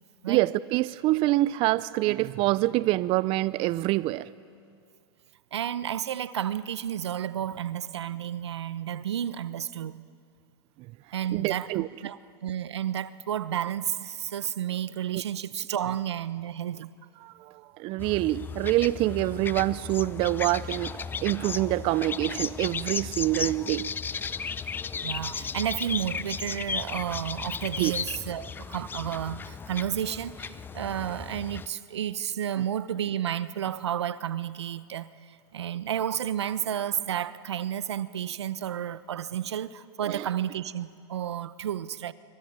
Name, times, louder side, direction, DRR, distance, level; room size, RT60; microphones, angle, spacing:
voice 1, 0.3-4.3 11.3-11.9 17.2-23.9 27.8-27.9 40.1-40.3, right 18 dB, 40° right, 0.6 m, -26 dB
voice 2, 5.5-10.0 11.1-16.9 25.0-42.1, right 10 dB, 85° right, 1.0 m, -31 dB
sound 1, 18.0-31.7, left 6 dB, 15° left, 0.6 m, -35 dB
26.0 x 24.0 x 9.6 m
hypercardioid pair, 120°, 14 cm